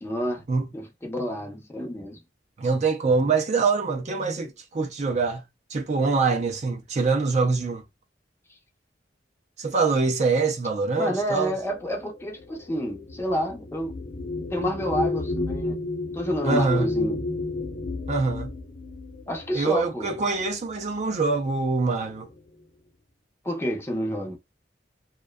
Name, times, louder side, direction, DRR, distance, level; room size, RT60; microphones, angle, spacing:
voice 1, 0.0-0.4 0.7-2.2 11.0-13.9 14.5-15.7 16.1-17.2 19.3-20.1 23.4-24.4, equal, 15° left, 0.6 m, -29 dB
voice 2, 2.6-5.4 5.7-7.8 9.6-11.5 16.4-16.9 18.1-18.5 19.5-22.3, right 4 dB, 40° right, 0.5 m, -24 dB
sound 1, 11.5-20.4 21.3-21.5 21.8-22.4, left 2 dB, 55° left, 0.9 m, -32 dB
2.5 x 2.2 x 2.2 m
head